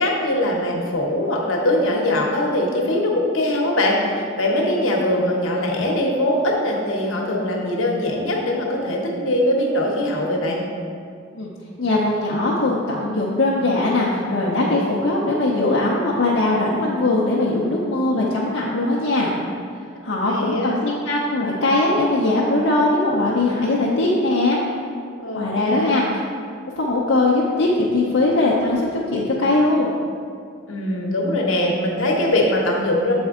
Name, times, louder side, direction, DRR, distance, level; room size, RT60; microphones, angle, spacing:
voice 1, 0.0-10.6 20.2-20.7 25.2-26.0 30.6-33.1, left 1 dB, 90° left, -1 dB, 1.0 m, -21 dB
voice 2, 11.8-19.3 20.0-24.6 25.4-26.2 26.8-29.9, left 2 dB, 70° left, -5 dB, 0.7 m, -20 dB
7.2 x 4.3 x 3.6 m, 2.3 s
head